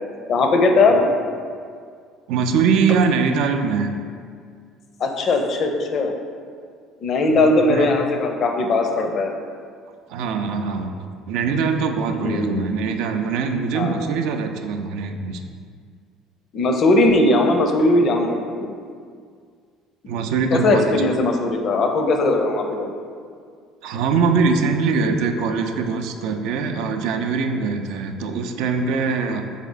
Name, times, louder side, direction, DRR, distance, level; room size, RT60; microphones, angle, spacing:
voice 1, 0.3-1.1 5.0-6.2 7.0-9.3 12.2-12.6 13.7-14.1 16.5-18.7 20.5-22.9, left 2 dB, 50° left, 4 dB, 0.5 m, -19 dB
voice 2, 2.3-3.9 7.3-7.9 10.1-15.4 20.1-21.2 23.8-29.4, right 5 dB, 75° right, 6 dB, 0.3 m, -22 dB
3.6 x 3.5 x 3.9 m, 2.1 s
supercardioid pair, 80°, 0 cm